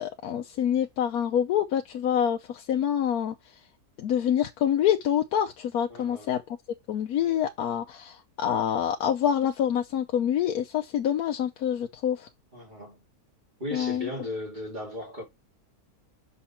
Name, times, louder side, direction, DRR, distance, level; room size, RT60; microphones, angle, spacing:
voice 1, 0.0-3.5 4.0-6.6 6.9-12.3 13.7-14.1, left 9 dB, 75° left, 1.2 m, -26 dB
voice 2, 5.9-6.3 12.5-13.0 13.6-15.2, left 1 dB, 30° right, 2.9 m, -36 dB
6.6 x 5.7 x 4.4 m
omnidirectional pair, 1.6 m